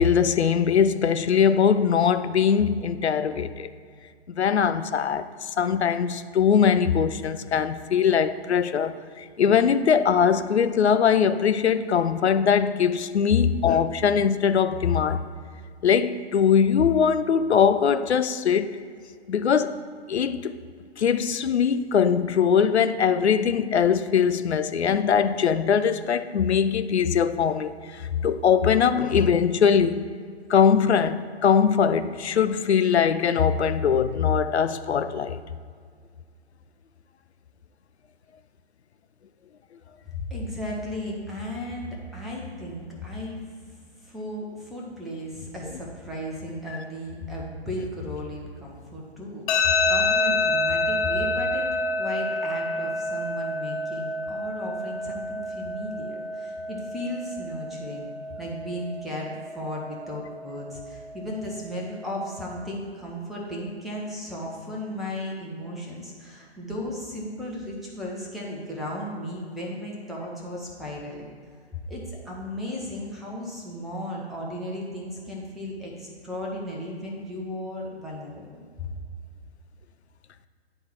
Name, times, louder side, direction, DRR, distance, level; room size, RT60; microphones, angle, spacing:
voice 1, 0.0-3.7 4.3-15.3 15.8-18.7 19.3-19.8 20.1-20.6 21.0-30.0 30.5-35.4, left 7 dB, 85° left, 0.5 m, -21 dB
voice 2, 40.1-43.5 44.0-58.1 58.4-71.3 71.9-78.9, left 1 dB, ahead, 0.8 m, -35 dB
sound 1, 49.5-62.5, left 2 dB, 35° left, 0.8 m, -28 dB
9.8 x 3.6 x 4.4 m
figure-of-eight pair, 125°, 32 cm